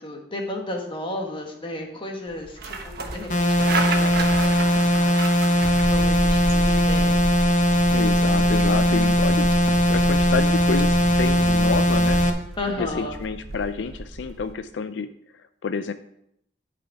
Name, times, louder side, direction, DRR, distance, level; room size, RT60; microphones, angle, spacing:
voice 1, 0.0-7.1 12.6-13.1, left 1 dB, 30° left, 1 dB, 1.4 m, -34 dB
sound 1, 2.3-14.5, right 3 dB, 60° right, 1.1 m, -35 dB
sound 2, 3.3-12.3, equal, 45° left, 1.0 m, -20 dB
sound 3, 5.6-12.3, right 1 dB, 10° right, 0.5 m, -29 dB
voice 2, 7.9-9.5 9.9-12.2 12.8-15.9, left 5 dB, 85° left, 11 dB, 0.4 m, -29 dB
10.5 x 5.1 x 4.7 m, 0.75 s
head